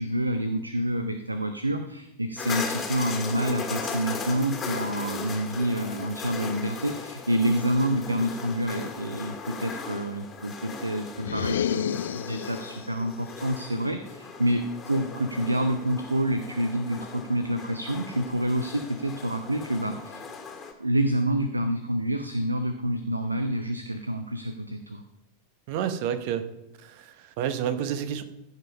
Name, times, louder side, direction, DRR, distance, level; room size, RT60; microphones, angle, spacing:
voice 1, 0.0-20.2 20.8-25.0, right 1 dB, 85° right, 8 dB, 0.7 m, -28 dB
sound 1, 2.4-20.7, left 5 dB, 20° left, 1.7 m, -38 dB
sound 2, 11.2-12.8, left 9 dB, 60° left, 0.3 m, -30 dB
voice 2, 25.7-26.5 26.8-28.2, right 9 dB, 45° right, 11 dB, 1.0 m, -29 dB
15.5 x 5.3 x 5.2 m, 0.86 s
figure-of-eight pair, 90°, 0 cm